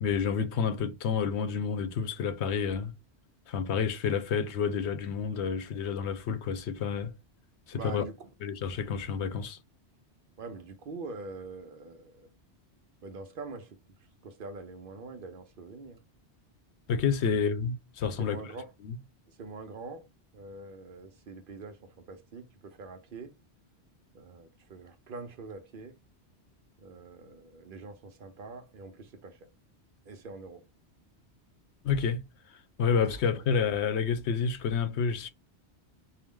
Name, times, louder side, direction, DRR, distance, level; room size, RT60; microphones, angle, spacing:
voice 1, 0.0-2.9 3.5-7.1 7.7-8.1 8.4-9.6 16.9-18.4 18.8-19.0 31.8-32.2 32.8-35.3, left 6 dB, 75° left, 0.9 m, -29 dB
voice 2, 7.7-8.3 10.4-12.3 13.0-13.8 14.2-16.0 18.2-18.7 19.3-20.1 20.3-23.3 24.1-25.9 26.8-29.4 30.1-30.6 33.0-33.4, right 3 dB, 55° right, 0.7 m, -44 dB
4.6 x 2.0 x 3.6 m
omnidirectional pair, 1.1 m